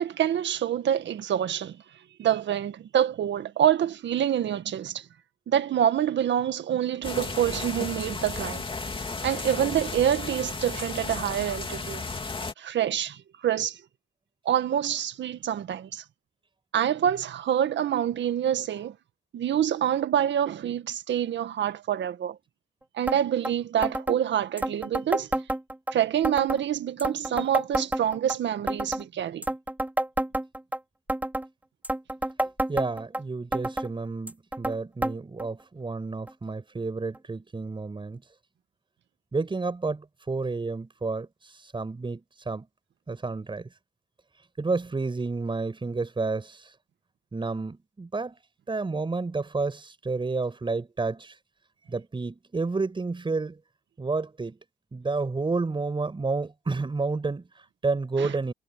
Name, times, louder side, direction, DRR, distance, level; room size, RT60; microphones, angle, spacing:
voice 1, 0.0-1.8 2.2-5.1 5.5-8.6 9.2-12.0 12.6-13.8 14.5-16.0 16.7-19.0 19.3-22.4 22.9-25.3 25.9-29.4 58.2-58.3, right 10 dB, 65° right, 1.9 m, -26 dB
sound 1, 7.0-12.5, left 4 dB, 25° left, 2.7 m, -34 dB
sound 2, 23.1-23.2 23.4-23.5 23.8-24.2 24.6-25.9 26.2-26.6 27.0-28.4 28.7-29.0 29.4-30.8 31.1-31.5 31.8-33.2 33.5-33.9 34.3-34.8 35.0-35.1 35.4-35.5 36.3-36.4 37.1-37.2, right 1 dB, 10° right, 5.0 m, -28 dB
voice 2, 32.4-38.2 39.3-42.2 42.5-42.7 43.1-43.7 44.6-46.7 47.3-48.4 48.7-51.4 51.9-53.6 54.0-54.6 54.9-58.5, right 3 dB, 25° right, 5.7 m, -30 dB
cardioid pair, 90°, 20 cm